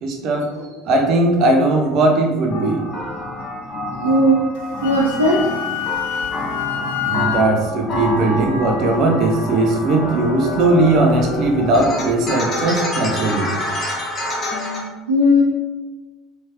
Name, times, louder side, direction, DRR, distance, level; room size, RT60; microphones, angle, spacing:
voice 1, 0.0-0.5 0.9-2.8 7.1-13.5, right 2 dB, 50° right, 2 dB, 0.8 m, -18 dB
sound 1, 2.5-14.8, left 2 dB, 35° left, 1.2 m, -27 dB
voice 2, 3.9-4.4 4.8-5.4 15.1-15.4, left 1 dB, 80° right, -3 dB, 0.4 m, -16 dB
Wind instrument woodwind instrument, 4.6-7.5, left 10 dB, 65° left, 0.4 m, -26 dB
4.5 x 3.5 x 3.0 m, 1.2 s
figure-of-eight pair, 65°, 0 cm